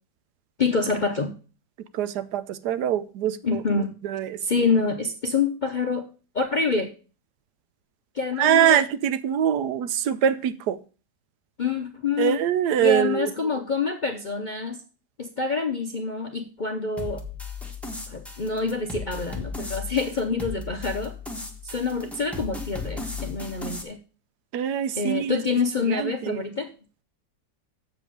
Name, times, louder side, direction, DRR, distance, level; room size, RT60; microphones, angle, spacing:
voice 1, 0.6-1.3 3.4-3.9 4.4-6.1 6.3-6.9 8.1-8.8 11.6-12.4 12.8-14.8 15.2-17.2 18.1-21.1 21.6-24.0 24.9-26.7, left 4 dB, 45° left, 0.6 m, -26 dB
voice 2, 1.9-3.6 4.0-4.4 8.4-10.8 12.2-13.3 24.5-25.4 25.8-26.4, right 10 dB, 75° right, 1.2 m, -23 dB
sound 1, 17.0-23.8, left 4 dB, ahead, 1.1 m, -36 dB
7.5 x 7.4 x 5.0 m
omnidirectional pair, 1.8 m